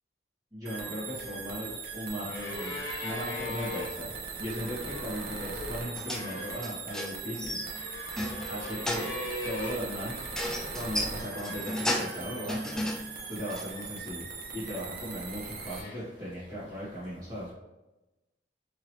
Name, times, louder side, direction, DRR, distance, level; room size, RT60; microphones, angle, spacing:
voice 1, 0.5-7.6 8.5-9.1 9.4-10.3 10.7-12.9 13.3-17.5, equal, 20° right, -10 dB, 1.2 m, -38 dB
sound 1, 0.7-15.8, right 5 dB, 60° right, 0.5 m, -40 dB
sound 2, 1.1-12.8 13.1-14.0 14.7-16.4 17.4-17.5, left 2 dB, 85° left, 0.8 m, -42 dB
sound 3, 5.9-6.3 6.6-7.8 8.1-9.2 10.3-12.2 12.5-13.1 13.5-13.6, left 1 dB, 5° left, 0.3 m, -34 dB
2.9 x 2.8 x 2.9 m, 1.0 s
head